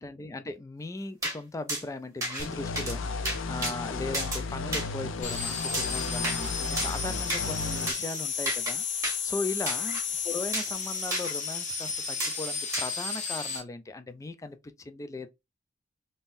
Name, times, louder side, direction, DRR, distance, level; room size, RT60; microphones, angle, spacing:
voice 1, 0.0-15.3, left 2 dB, 15° left, 0.3 m, -38 dB
sound 1, 1.2-1.4 1.7-1.8 2.2-2.5 2.8-3.0 3.2-3.7 4.1-4.4 4.7-4.9 5.7-6.4 6.8-7.0 7.3-7.4 7.9-8.0 8.5-8.7 9.0-9.2 9.7-10.0 10.5-10.7 11.1-11.3 12.2-12.4 12.7-12.9, right 1 dB, 15° right, 1.4 m, -31 dB
sound 2, 2.4-7.9, left 4 dB, 90° left, 0.5 m, -34 dB
sound 3, 5.2-13.6, left 5 dB, 40° left, 1.1 m, -33 dB
3.6 x 2.7 x 2.5 m
head